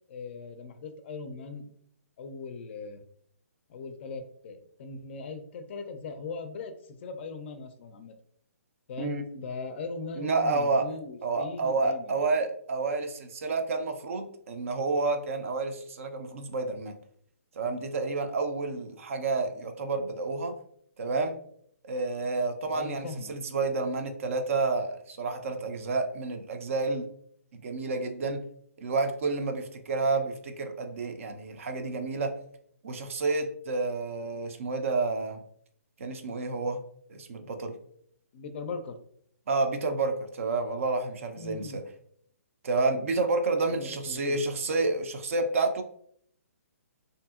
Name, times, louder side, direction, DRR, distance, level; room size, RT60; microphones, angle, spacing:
voice 1, 0.1-1.7 2.2-3.0 3.7-8.1 8.9-12.2 22.7-23.3 38.3-39.0 41.3-41.8 43.7-44.6, left 4 dB, 45° left, 9 dB, 0.4 m, -39 dB
voice 2, 9.0-9.5 10.2-10.9 11.2-17.0 17.6-20.5 21.0-21.4 21.8-27.1 27.5-28.4 28.8-32.3 32.8-35.4 36.0-36.8 37.1-37.8 39.5-41.8 42.6-45.8, right 3 dB, 55° right, 6 dB, 0.4 m, -29 dB
2.6 x 2.6 x 2.3 m, 0.65 s
hypercardioid pair, 140°, 8 cm